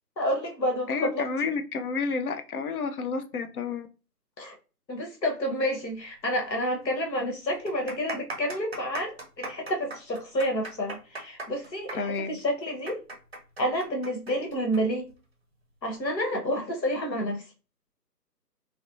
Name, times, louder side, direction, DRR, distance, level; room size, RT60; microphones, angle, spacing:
voice 1, 0.2-1.2 4.4-4.5 4.9-13.0 13.6-15.1 15.8-17.5, equal, 90° left, 2 dB, 1.0 m, -29 dB
voice 2, 0.9-3.9 11.9-12.3, left 4 dB, 60° left, 7 dB, 0.5 m, -30 dB
sound 1, 6.5-6.6 6.8-6.9 7.5-14.8 15.1-15.2 15.9-16.2, right 2 dB, 40° right, 0.5 m, -38 dB
2.6 x 2.1 x 2.5 m, 0.34 s
figure-of-eight pair, 150°, 49 cm